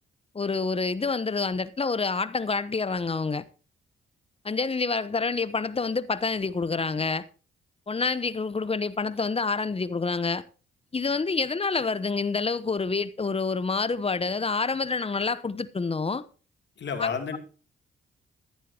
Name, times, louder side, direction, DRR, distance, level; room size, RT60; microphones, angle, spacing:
voice 1, 0.3-3.4 4.4-7.2 7.9-10.4 10.9-16.2 17.0-17.4, left 4 dB, 30° left, 0.9 m, -27 dB
voice 2, 16.8-17.4, left 6 dB, 55° left, 2.9 m, -30 dB
14.5 x 11.5 x 2.9 m
supercardioid pair, 55°, 21 cm